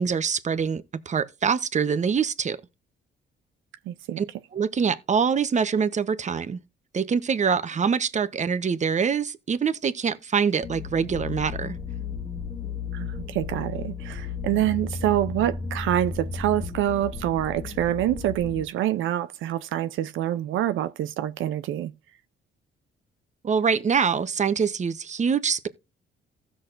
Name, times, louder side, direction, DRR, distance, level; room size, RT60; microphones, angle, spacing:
voice 1, 0.0-2.6 4.2-4.3 4.5-6.6 6.9-11.7 23.4-25.7, right 6 dB, 35° right, 0.9 m, -24 dB
voice 2, 3.9-4.2 12.9-21.9, right 12 dB, 80° right, 0.6 m, -26 dB
sound 1, 10.6-18.6, left 5 dB, 35° left, 1.5 m, -34 dB
16.0 x 6.3 x 2.5 m
cardioid pair, 90°, 20 cm